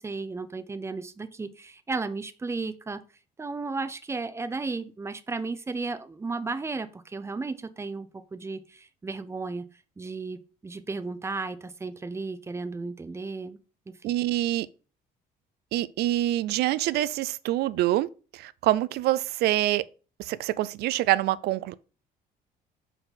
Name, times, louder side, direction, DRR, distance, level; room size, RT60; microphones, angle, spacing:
voice 1, 0.0-3.0 3.4-9.6 10.0-13.6 13.9-14.1, right 3 dB, 15° right, 0.6 m, -34 dB
voice 2, 14.0-14.7 15.7-18.1 18.3-19.8 20.2-21.7, right 15 dB, 75° right, 0.4 m, -25 dB
5.3 x 4.7 x 3.8 m
cardioid pair, 110°, 17 cm